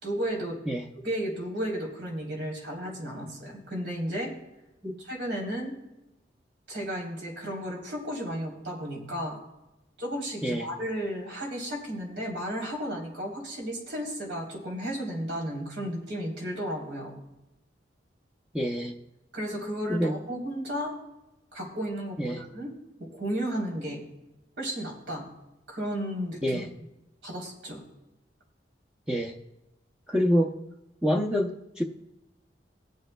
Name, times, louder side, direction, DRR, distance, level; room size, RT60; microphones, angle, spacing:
voice 1, 0.0-0.6 1.0-4.3 5.0-5.7 6.7-9.4 10.0-17.2 19.3-20.9 21.5-22.7 23.0-24.0 24.6-25.3 25.7-26.6 27.2-27.8, equal, 80° right, -2 dB, 3.4 m, -33 dB
voice 2, 18.5-18.9 19.9-20.2 22.2-22.4 26.4-26.7 29.1-29.4 30.1-30.6 31.0-31.8, equal, 5° right, -1 dB, 0.6 m, -26 dB
20.5 x 7.7 x 2.2 m, 0.96 s
head